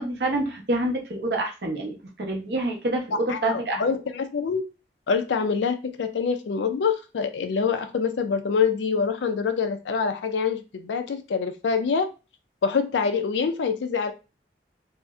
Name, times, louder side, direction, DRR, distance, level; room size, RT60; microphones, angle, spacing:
voice 1, 0.0-3.8, right 1 dB, 70° right, 1 dB, 0.9 m, -27 dB
voice 2, 3.1-4.6 5.1-12.1 12.6-14.1, left 5 dB, 90° left, 8 dB, 0.4 m, -25 dB
2.6 x 2.1 x 3.5 m, 0.30 s
head